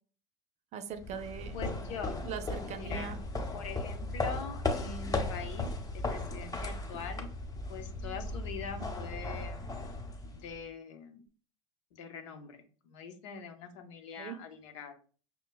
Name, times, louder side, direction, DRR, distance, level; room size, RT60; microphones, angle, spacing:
voice 1, 0.7-1.6 2.2-3.2 8.8-8.9 14.2-14.4, right 7 dB, 45° right, 0.5 m, -41 dB
sound 1, 1.0-10.6, left 2 dB, 20° left, 0.7 m, -36 dB
voice 2, 1.5-2.2 2.7-3.1 3.5-5.7 5.9-7.3 7.7-9.7 10.2-11.2 11.9-14.9, left 6 dB, 70° left, 0.7 m, -43 dB
5.6 x 2.2 x 2.2 m
hypercardioid pair, 80°, 17 cm